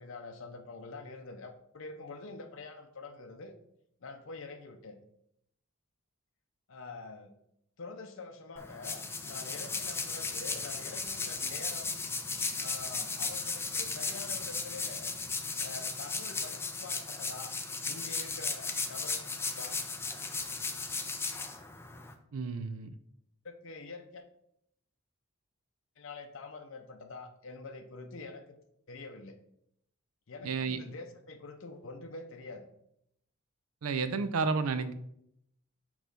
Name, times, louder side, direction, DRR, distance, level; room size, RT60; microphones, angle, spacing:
voice 1, 0.0-3.5 4.0-5.0 6.7-7.3 7.8-12.0 12.6-15.1 15.6-17.5 17.9-19.8 23.4-24.3 26.0-28.6 28.9-29.4 30.3-32.6, left 3 dB, 60° left, 4 dB, 0.6 m, -46 dB
sound 1, 8.6-22.1, left 4 dB, 10° left, 0.4 m, -36 dB
voice 2, 22.3-23.0 30.4-30.8 33.8-34.9, right 4 dB, 90° right, 12 dB, 0.5 m, -31 dB
6.1 x 3.0 x 5.2 m, 0.75 s
head